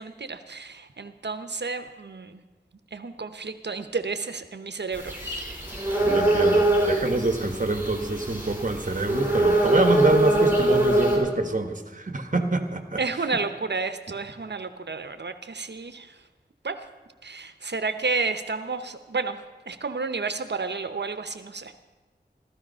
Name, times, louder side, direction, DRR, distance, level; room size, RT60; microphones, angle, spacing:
voice 1, 0.0-2.4 2.9-5.6 13.0-16.2 16.6-16.8 17.2-21.7, right 4 dB, 90° right, 10 dB, 0.9 m, -31 dB
sound 1, 4.9-11.2, right 1 dB, 10° right, 4.8 m, -23 dB
voice 2, 6.1-13.0, right 2 dB, 50° right, 7 dB, 1.5 m, -26 dB
15.0 x 13.5 x 5.6 m, 1.2 s
wide cardioid pair, 50°, 17 cm